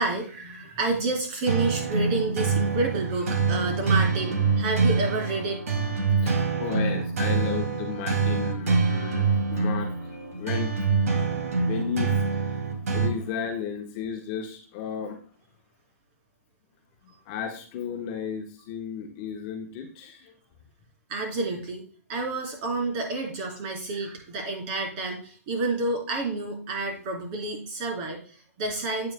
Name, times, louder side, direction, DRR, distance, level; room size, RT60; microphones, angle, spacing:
voice 1, 0.0-5.6 21.1-21.8 22.1-29.1, right 3 dB, 35° right, 0 dB, 3.7 m, -29 dB
sound 1, 1.5-13.1, right 4 dB, 75° right, 2.3 m, -25 dB
voice 2, 6.2-10.1 10.4-10.7 11.3-12.1 12.9-15.2 17.3-20.3, left 7 dB, 35° left, 2 dB, 1.2 m, -33 dB
9.0 x 8.7 x 2.2 m, 0.43 s
hypercardioid pair, 150°, 8 cm